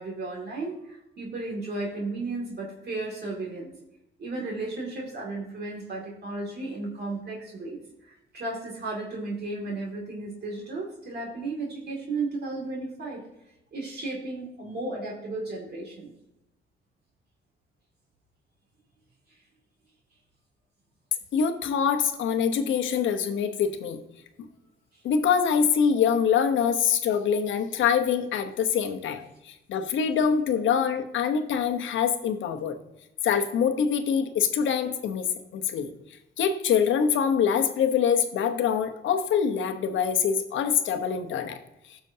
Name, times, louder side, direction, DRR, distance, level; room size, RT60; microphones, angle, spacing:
voice 1, 0.0-3.7 4.2-7.8 8.1-13.2 13.7-16.1, right 2 dB, 55° right, -1 dB, 2.4 m, -34 dB
voice 2, 21.3-24.0 25.0-32.8 33.2-35.2 35.5-35.9 36.4-41.6, left 7 dB, 75° left, 7 dB, 1.1 m, -24 dB
15.5 x 6.2 x 2.8 m, 0.87 s
cardioid pair, 90°, 20 cm